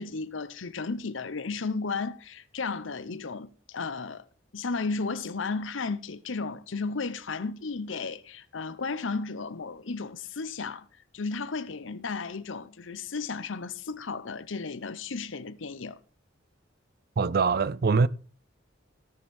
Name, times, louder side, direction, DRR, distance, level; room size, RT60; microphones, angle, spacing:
voice 1, 0.0-4.2 4.5-10.9 11.1-16.0, left 4 dB, 85° left, 0.8 m, -34 dB
voice 2, 17.2-18.1, right 4 dB, 55° right, 0.5 m, -23 dB
17.0 x 6.5 x 4.3 m
head